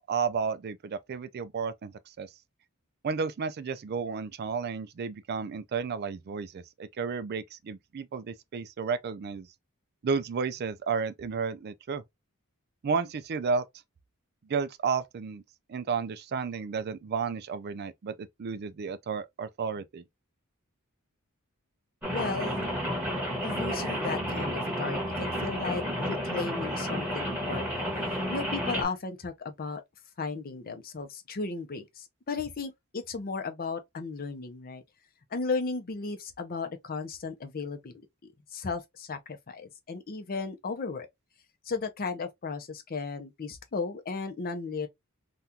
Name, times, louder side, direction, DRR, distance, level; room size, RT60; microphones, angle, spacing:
voice 1, 0.1-2.3 3.0-9.5 10.0-12.0 12.8-13.6 14.5-15.4 15.7-20.0, right 5 dB, 45° right, 0.4 m, -32 dB
Rain, 22.0-28.8, equal, 5° right, 1.4 m, -31 dB
voice 2, 22.1-22.7 23.4-29.8 30.2-34.8 35.3-37.9 38.5-41.1 41.7-44.9, left 4 dB, 40° left, 0.6 m, -35 dB
3.6 x 2.3 x 2.7 m
head